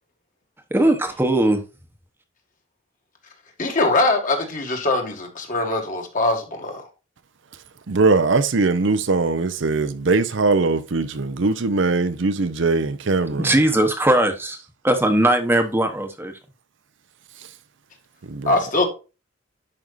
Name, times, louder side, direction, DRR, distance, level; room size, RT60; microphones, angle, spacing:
voice 1, 0.7-1.6 13.4-14.6 14.8-16.3, right 1 dB, 10° right, 1.0 m, -19 dB
voice 2, 3.6-6.9 18.5-18.9, left 2 dB, 40° left, 1.8 m, -22 dB
voice 3, 7.9-13.5 18.3-18.6, right 3 dB, 60° right, 0.6 m, -21 dB
11.0 x 5.4 x 2.5 m
head